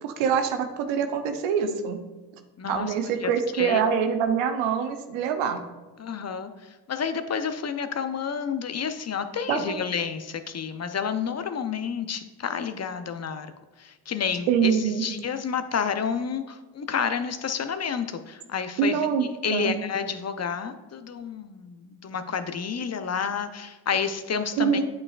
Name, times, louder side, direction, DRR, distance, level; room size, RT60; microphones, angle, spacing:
voice 1, 0.0-2.0 2.7-5.6 9.5-9.8 14.5-15.0 18.8-19.7 24.6-24.9, right 7 dB, 85° right, 7 dB, 0.7 m, -25 dB
voice 2, 2.6-2.9 3.2-3.8 6.0-13.5 13.8-19.0 19.4-24.8, left 6 dB, 35° left, 9 dB, 0.6 m, -30 dB
8.4 x 4.7 x 2.4 m, 1.2 s
supercardioid pair, 50°, 45 cm